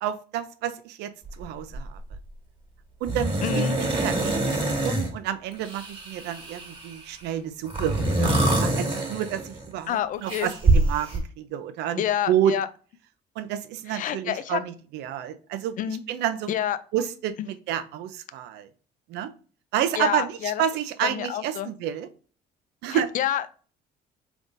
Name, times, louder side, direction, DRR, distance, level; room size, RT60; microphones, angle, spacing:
voice 1, 0.0-2.0 3.0-12.5 13.4-16.5 16.9-18.7 19.1-19.3 19.7-22.1 22.8-23.1, right 10 dB, 85° right, 11 dB, 0.5 m, -30 dB
sound 1, 1.3-1.4 1.7-2.2 3.1-5.1 5.6-7.0 7.7-9.7 10.3-11.2, right 2 dB, 30° right, 1.6 m, -25 dB
voice 2, 3.4-3.8 9.9-10.5 12.0-12.7 13.9-14.6 15.8-16.0 16.5-16.8 20.0-20.6 21.0-21.7 22.9-23.5, left 11 dB, 50° left, 14 dB, 0.4 m, -28 dB
3.8 x 3.4 x 2.5 m, 0.40 s
cardioid pair, 110°, 17 cm